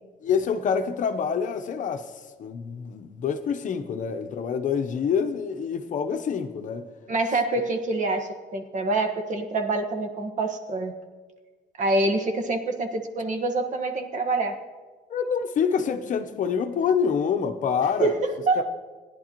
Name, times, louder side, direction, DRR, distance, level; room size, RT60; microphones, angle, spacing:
voice 1, 0.2-2.1 2.4-6.9 15.1-18.1 18.6-18.7, left 6 dB, 50° left, 0.8 m, -26 dB
voice 2, 7.1-10.9 11.8-14.6 18.0-18.7, right 2 dB, 45° right, 1.3 m, -26 dB
17.0 x 10.5 x 2.9 m
cardioid pair, 110°, 17 cm